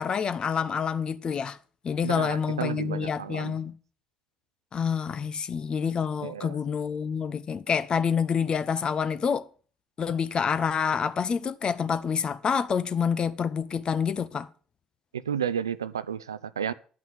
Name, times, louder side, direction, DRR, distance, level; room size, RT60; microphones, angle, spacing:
voice 1, 0.0-1.6 1.8-3.7 4.7-9.5 10.0-14.5, left 6 dB, 40° left, 0.9 m, -27 dB
voice 2, 2.0-3.6 6.2-6.6 15.1-16.7, right 8 dB, 90° right, 0.5 m, -32 dB
10.5 x 6.1 x 7.9 m
hypercardioid pair, 55°, 2 cm